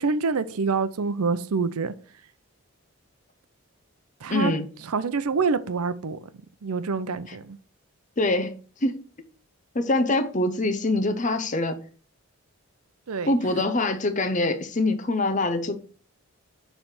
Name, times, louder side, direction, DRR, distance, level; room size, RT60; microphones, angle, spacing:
voice 1, 0.0-1.9 4.2-4.5 4.9-6.2 6.6-7.6 13.1-13.4, right 4 dB, 85° right, 0.6 m, -26 dB
voice 2, 4.3-4.7 7.3-7.4 8.2-8.5 8.8-9.0 9.7-11.8 13.3-15.8, left 2 dB, 35° left, 0.7 m, -24 dB
6.8 x 3.4 x 5.9 m
head